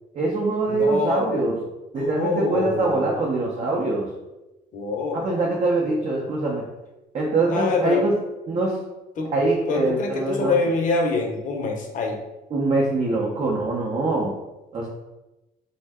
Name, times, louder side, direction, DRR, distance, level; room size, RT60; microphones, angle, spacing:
voice 1, 0.1-1.6 1.9-4.1 5.1-6.6 7.1-8.1 8.5-8.8 9.3-10.6 12.5-14.4 14.7-14.9, right 2 dB, 40° right, -3 dB, 0.6 m, -23 dB
voice 2, 0.7-1.3 1.9-3.1 4.7-5.4 7.5-8.1 9.2-9.3 9.7-12.2, left 3 dB, 50° left, 2 dB, 0.6 m, -25 dB
2.6 x 2.1 x 3.4 m, 0.99 s
cardioid pair, 110°, 17 cm